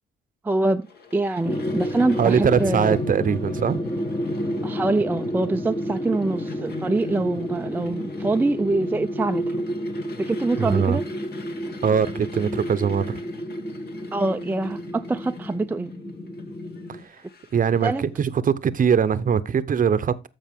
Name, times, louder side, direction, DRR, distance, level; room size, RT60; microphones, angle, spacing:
voice 1, 0.4-0.9 1.1-3.0 4.6-9.6 10.3-11.0 14.1-15.9 17.8-18.0, right 2 dB, 10° right, 0.4 m, -24 dB
sound 1, 0.8-18.1, left 4 dB, 55° left, 1.8 m, -49 dB
sound 2, 1.4-17.0, equal, 20° left, 1.0 m, -30 dB
voice 2, 2.2-3.8 10.6-11.0 11.8-13.2 17.5-20.1, right 7 dB, 45° right, 0.7 m, -21 dB
13.5 x 5.3 x 3.6 m
cardioid pair, 90°, 20 cm